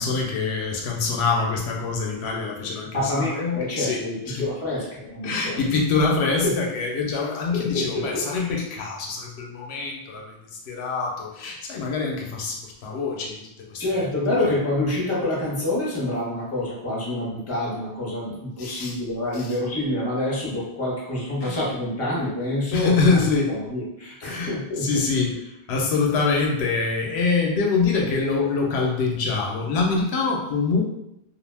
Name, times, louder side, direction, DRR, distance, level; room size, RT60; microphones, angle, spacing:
voice 1, 0.0-4.5 5.2-10.4 10.7-13.4 13.7-14.0 14.4-14.5 18.6-19.0 19.3-19.5 21.4-21.6 22.7-23.5 24.2-25.4 25.7-30.8, left 4 dB, 85° left, 0 dB, 0.8 m, -25 dB
voice 2, 2.9-5.8 6.4-6.6 7.5-8.5 13.8-25.0, left 1 dB, 15° left, -6 dB, 0.7 m, -27 dB
2.4 x 2.1 x 3.2 m, 0.86 s
omnidirectional pair, 1.1 m